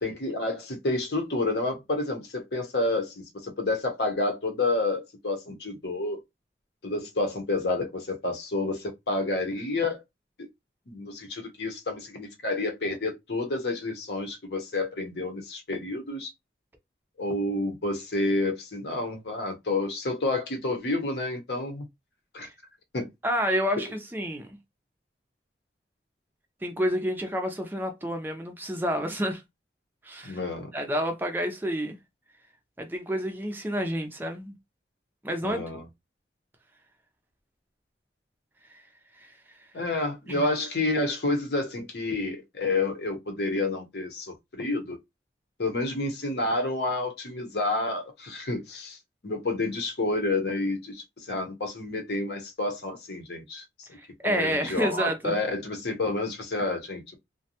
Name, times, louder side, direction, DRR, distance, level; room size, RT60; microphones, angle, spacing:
voice 1, 0.0-6.2 6.8-10.0 10.4-10.5 10.9-16.3 17.2-21.9 22.3-22.5 22.9-23.1 23.8-23.9 30.2-30.7 35.4-35.9 39.7-45.0 45.6-49.0 49.2-54.0 54.2-57.2, left 2 dB, 70° left, 0.8 m, -29 dB
voice 2, 23.2-24.6 26.6-29.4 30.0-30.4 30.7-32.0 32.8-34.5 35.2-35.6 38.7-38.8 39.2-39.3 40.3-40.5 54.0-55.4, equal, 10° right, 0.4 m, -29 dB
2.5 x 2.1 x 2.8 m
head